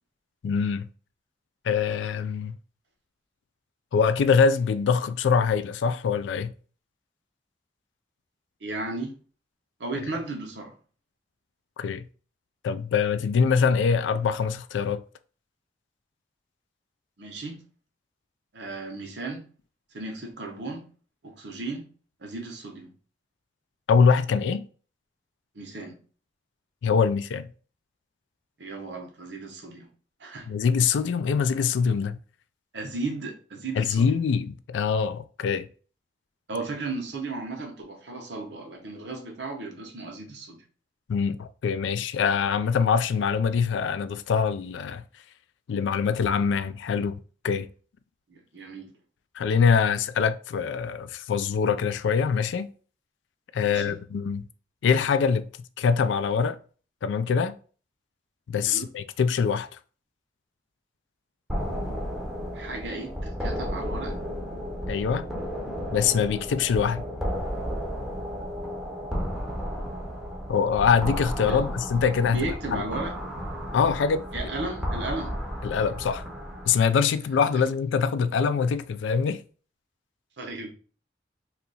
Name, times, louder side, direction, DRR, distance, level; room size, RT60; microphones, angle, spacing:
voice 1, 0.4-0.9 1.6-2.6 3.9-6.5 11.8-12.0 12.6-15.0 23.9-24.7 26.8-27.5 30.5-32.2 33.8-35.7 41.1-45.0 45.7-47.2 47.4-47.7 49.4-52.7 53.5-54.4 54.8-55.5 55.8-56.6 57.0-57.5 58.5-59.7 64.9-65.3 65.9-67.0 70.5-72.8 73.7-74.2 75.6-76.3 76.7-79.4, left 6 dB, 85° left, 0.3 m, -24 dB
voice 2, 8.6-9.1 9.8-10.7 17.2-17.6 18.5-19.4 19.9-20.9 21.2-21.9 22.2-22.9 25.5-26.0 28.6-29.9 30.2-30.5 32.7-34.2 36.5-40.6 48.3-48.9 53.6-54.0 58.7-58.9 62.5-64.2 71.5-71.6 72.2-73.1 74.3-75.3 77.5-77.6 80.4-80.7, right 3 dB, 75° right, 0.9 m, -35 dB
sound 1, 61.5-76.7, equal, ahead, 0.6 m, -33 dB
2.8 x 2.4 x 4.0 m
head